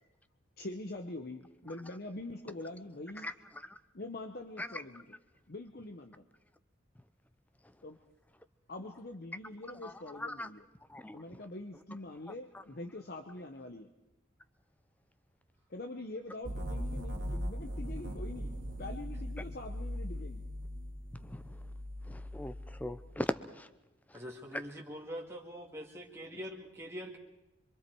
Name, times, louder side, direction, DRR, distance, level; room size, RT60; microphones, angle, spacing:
voice 1, 0.6-3.3 3.9-5.2 5.5-6.3 7.8-8.0 8.7-10.7 11.1-13.9 15.7-20.4, left 2 dB, 55° left, 5 dB, 1.0 m, -44 dB
sound 1, 16.4-23.2, equal, 80° right, 1.9 m, -40 dB
voice 2, 21.2-21.6 22.1-22.5 22.8-23.7, left 1 dB, 10° left, 12 dB, 0.7 m, -38 dB
voice 3, 24.1-27.2, equal, 15° right, -2 dB, 2.2 m, -44 dB
26.0 x 23.5 x 4.7 m, 0.99 s
head